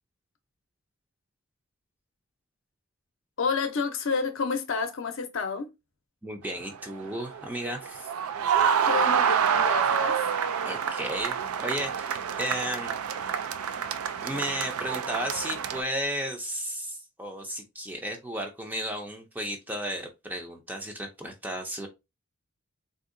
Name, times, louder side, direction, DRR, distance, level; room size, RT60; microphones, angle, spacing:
voice 1, 3.4-5.7 8.9-10.2, left 5 dB, 65° left, 0.6 m, -29 dB
voice 2, 6.2-8.1 10.6-12.9 14.2-21.9, right 1 dB, 10° right, 0.4 m, -34 dB
sound 1, 6.5-15.8, right 7 dB, 90° right, 0.4 m, -27 dB
3.7 x 2.7 x 2.5 m
head